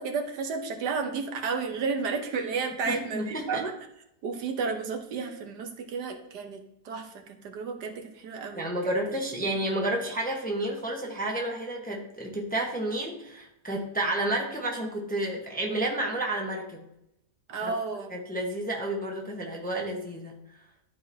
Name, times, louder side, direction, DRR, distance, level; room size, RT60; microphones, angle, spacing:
voice 1, 0.0-3.7 4.2-9.2 17.5-18.1, right 5 dB, 80° right, 5 dB, 1.5 m, -32 dB
voice 2, 2.8-3.6 8.5-16.9 17.7-17.8 18.1-20.4, right 1 dB, 5° left, -1 dB, 0.9 m, -31 dB
12.5 x 4.9 x 2.8 m, 0.81 s
omnidirectional pair, 1.7 m